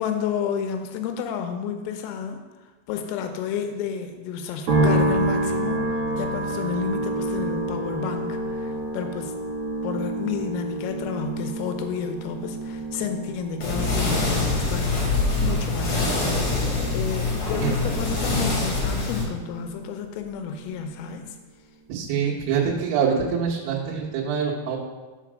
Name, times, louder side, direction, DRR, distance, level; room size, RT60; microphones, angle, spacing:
voice 1, 0.0-2.4 2.9-5.8 6.1-9.3 9.8-15.0 15.4-16.3 16.9-21.2, left 7 dB, 90° left, 6 dB, 3.5 m, -31 dB
sound 1, 4.7-19.9 20.2-21.0, right 1 dB, 60° right, 2.0 m, -29 dB
sound 2, 13.6-19.2, left 3 dB, 50° left, 2.1 m, -24 dB
voice 2, 21.9-24.8, right 6 dB, 75° right, -5 dB, 3.4 m, -25 dB
6.9 x 5.1 x 6.1 m, 1.3 s
omnidirectional pair, 5.8 m